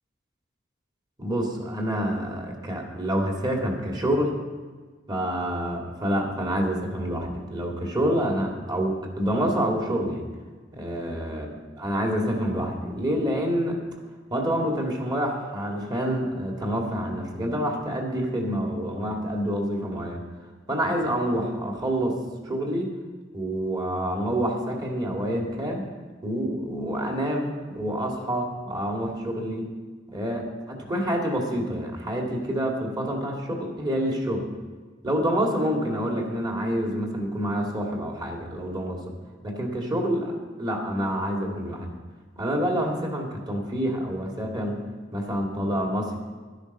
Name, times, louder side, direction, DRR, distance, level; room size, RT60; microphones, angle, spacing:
voice 1, 1.2-4.4 5.1-10.3 10.7-13.8 14.3-20.2 20.7-22.9 23.3-25.9 26.2-29.7 30.1-34.5 35.0-39.1 39.4-42.0 42.4-44.8 45.1-46.2, equal, 25° right, 1 dB, 2.1 m, -27 dB
12.0 x 10.5 x 5.4 m, 1.4 s
head